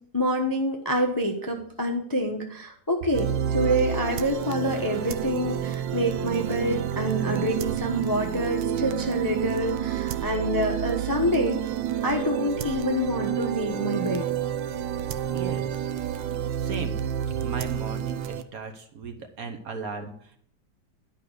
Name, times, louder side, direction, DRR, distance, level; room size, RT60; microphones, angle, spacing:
voice 1, 0.1-11.6 12.0-14.3, equal, 20° left, 3 dB, 0.6 m, -27 dB
sound 1, 3.1-18.4, right 9 dB, 75° right, 1.3 m, -29 dB
voice 2, 15.3-15.9 16.6-17.0 17.4-20.4, right 5 dB, 55° right, 6 dB, 1.2 m, -37 dB
10.5 x 5.5 x 6.6 m, 0.62 s
omnidirectional pair, 2.1 m